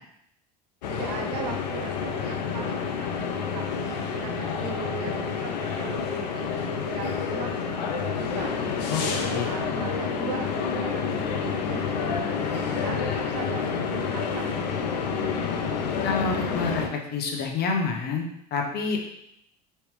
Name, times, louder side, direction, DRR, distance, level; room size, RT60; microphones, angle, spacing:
sound 1, 0.8-16.9, left 6 dB, 85° left, 0.6 m, -29 dB
voice 1, 0.9-3.1 3.5-3.9 4.2-6.6 6.9-8.6 9.0-15.1, right 5 dB, 80° right, 2 dB, 1.0 m, -39 dB
voice 2, 16.0-18.2 18.5-19.1, left 4 dB, 50° left, 1 dB, 1.1 m, -28 dB
4.8 x 3.3 x 3.3 m, 0.75 s
hypercardioid pair, 90°, 21 cm